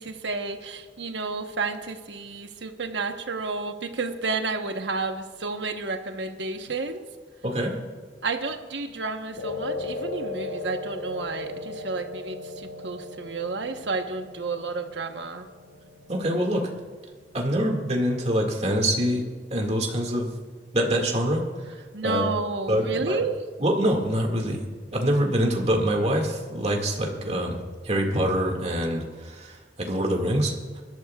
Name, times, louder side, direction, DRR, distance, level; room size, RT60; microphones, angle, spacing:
voice 1, 0.0-7.1 8.2-15.5 21.9-23.4, right 3 dB, 75° right, 6 dB, 1.1 m, -31 dB
voice 2, 7.4-7.7 16.1-16.6 17.3-19.2 19.5-20.4 20.7-21.4 22.0-22.2 22.7-23.2 23.6-24.6 24.9-30.8, equal, 35° right, 1 dB, 2.0 m, -25 dB
sound 1, 9.4-17.9, left 2 dB, 70° left, 1.7 m, -37 dB
24.5 x 12.5 x 2.4 m, 1.5 s
head